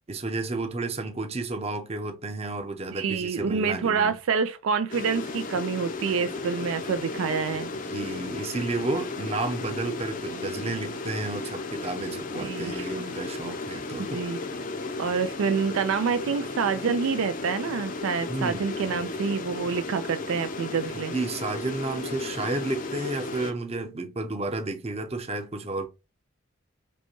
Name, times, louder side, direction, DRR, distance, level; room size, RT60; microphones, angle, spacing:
voice 1, 0.1-4.1 7.7-14.2 18.3-19.0 20.9-25.9, right 2 dB, 30° right, 0.7 m, -32 dB
voice 2, 2.9-7.7 12.4-12.9 14.0-14.4 15.0-21.1, right 5 dB, 80° right, 0.4 m, -27 dB
sound 1, 4.9-23.5, left 3 dB, 40° left, 0.5 m, -35 dB
5.2 x 2.2 x 3.0 m
head